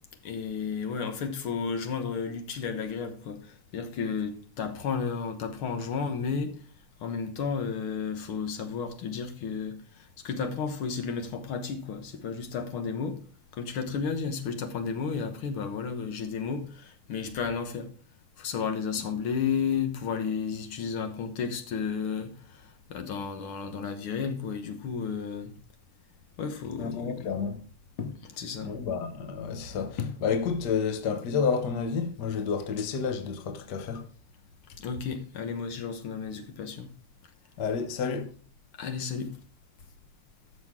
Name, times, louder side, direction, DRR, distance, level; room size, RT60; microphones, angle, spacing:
voice 1, 0.2-6.5 7.0-13.2 13.5-17.9 18.4-25.5 26.4-27.3 28.4-28.7 34.8-36.9 38.8-39.4, left 6 dB, 60° left, 1.6 m, -32 dB
voice 2, 26.8-27.6 28.0-28.2 28.6-34.1 37.6-38.3, left 6 dB, 80° left, 0.9 m, -30 dB
13.5 x 6.4 x 3.6 m
omnidirectional pair, 3.5 m